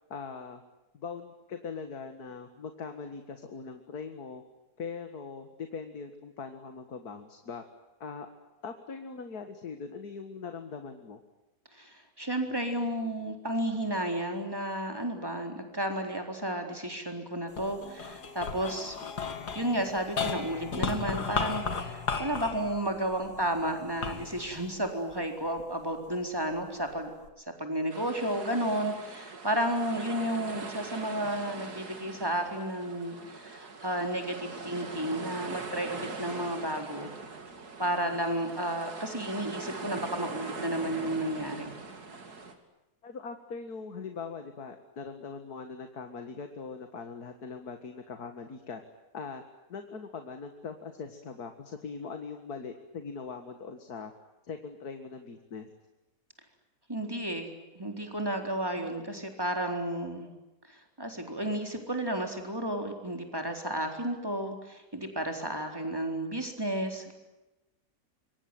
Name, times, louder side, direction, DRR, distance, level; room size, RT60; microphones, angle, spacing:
voice 1, 0.1-0.6 0.9-4.4 4.8-7.6 8.0-8.3 8.6-11.2 38.1-38.2 43.0-48.8 49.1-49.4 49.7-54.1 54.4-55.7 58.7-58.9, left 5 dB, 70° left, 7 dB, 2.3 m, -41 dB
voice 2, 11.7-19.0 19.5-27.1 27.6-37.1 37.8-41.7 56.9-57.5 57.7-60.3 60.7-67.1, right 1 dB, 15° right, 4 dB, 4.2 m, -32 dB
sound 1, 17.5-26.0 26.5-27.3, left 5 dB, 85° left, 2.7 m, -36 dB
sound 2, 27.9-42.5, right 3 dB, 75° right, 3.2 m, -42 dB
26.5 x 23.5 x 9.3 m, 0.99 s
omnidirectional pair, 1.7 m